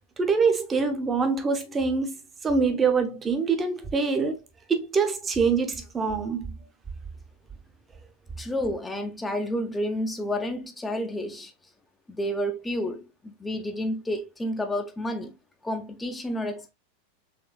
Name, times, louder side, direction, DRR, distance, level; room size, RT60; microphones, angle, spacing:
voice 1, 0.2-2.1 2.4-4.4 4.7-6.6, right 5 dB, 20° right, 1.0 m, -24 dB
voice 2, 8.4-11.5 12.1-15.3 15.6-16.7, equal, 10° left, 0.7 m, -30 dB
6.0 x 3.3 x 2.3 m
figure-of-eight pair, 90°, 0 cm